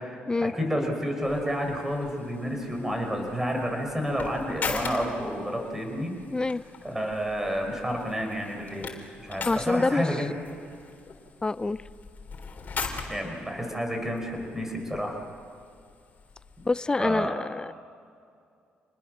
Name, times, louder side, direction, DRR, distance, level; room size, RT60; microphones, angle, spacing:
voice 1, 0.0-6.1 6.8-8.9 9.2-10.3 13.1-15.2 17.0-17.5, equal, 10° right, 2 dB, 5.8 m, -30 dB
sound 1, 1.2-16.7, left 4 dB, 45° left, 3.7 m, -41 dB
voice 2, 6.3-6.6 9.5-10.0 11.4-11.8 16.7-17.7, left 3 dB, 20° left, 16 dB, 0.6 m, -26 dB
28.0 x 20.0 x 6.7 m, 2.4 s
cardioid pair, 80°, 4 cm